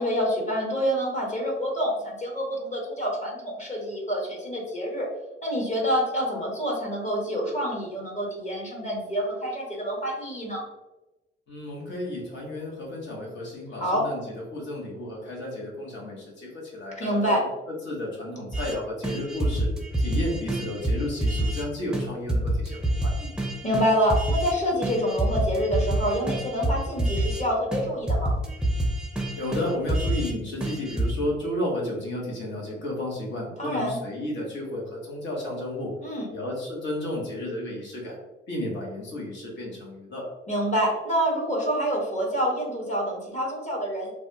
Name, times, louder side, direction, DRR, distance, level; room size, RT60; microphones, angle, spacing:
voice 1, 0.0-5.1 5.4-10.6 13.7-14.1 17.0-17.4 23.6-28.4 33.6-34.0 36.0-36.3 40.5-44.2, equal, 35° left, -1 dB, 1.2 m, -27 dB
voice 2, 11.5-17.5 17.8-19.7 20.0-23.4 29.4-35.9 36.3-38.2 38.5-40.3, left 1 dB, 65° left, -2 dB, 1.2 m, -32 dB
sound 1, 18.5-18.8 19.0-21.6 21.9-22.0 22.3-24.5 24.8-27.4 27.7-30.3 30.6-31.1, right 1 dB, 5° right, 0.5 m, -27 dB
3.3 x 2.3 x 2.7 m, 1.0 s
cardioid pair, 90°, 20 cm